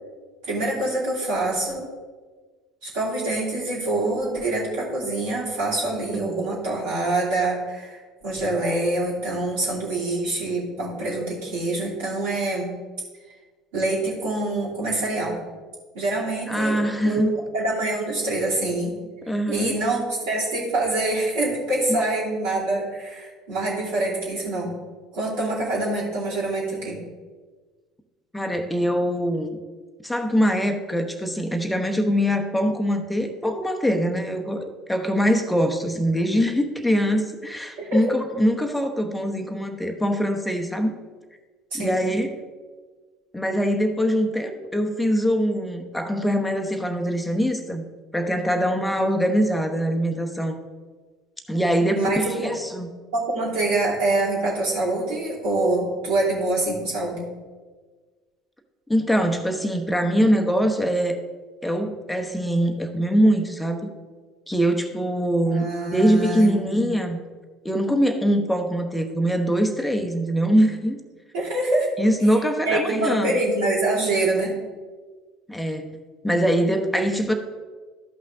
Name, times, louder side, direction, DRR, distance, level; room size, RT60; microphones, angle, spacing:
voice 1, 0.4-1.8 2.8-12.7 13.7-15.4 15.9-19.0 19.5-24.7 25.1-27.0 37.8-38.0 41.7-42.0 51.9-52.5 53.1-57.3 65.4-66.9 71.3-71.9 72.6-74.6, right 2 dB, 65° right, -9 dB, 2.8 m, -25 dB
voice 2, 16.5-17.4 19.3-19.8 21.9-22.0 28.3-29.6 30.0-40.9 41.7-42.3 43.3-47.8 48.1-50.6 51.5-52.9 58.9-61.2 61.6-63.9 64.5-65.7 65.9-67.2 67.6-71.0 72.0-73.4 75.5-75.9 76.2-77.3, equal, 5° left, 4 dB, 1.0 m, -23 dB
13.0 x 5.5 x 3.7 m, 1.4 s
figure-of-eight pair, 60°, 0 cm